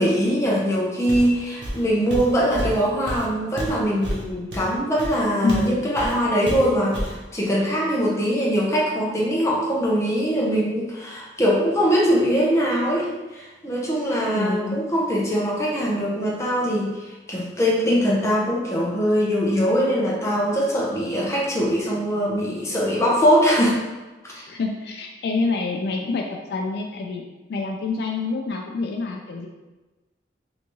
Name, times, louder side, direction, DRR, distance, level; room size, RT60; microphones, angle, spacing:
voice 1, 0.0-23.8 24.2-24.4, equal, 15° left, -5 dB, 0.6 m, -22 dB
Walk footsteps, 1.1-1.4 1.6-5.7 6.0-6.2 6.5-7.2, equal, 80° right, 0.9 m, -30 dB
voice 2, 5.4-5.9 14.3-14.8 24.5-26.2 26.5-27.2 27.5-29.5, left 3 dB, 60° left, 2 dB, 0.3 m, -26 dB
3.4 x 2.7 x 2.9 m, 1.2 s
head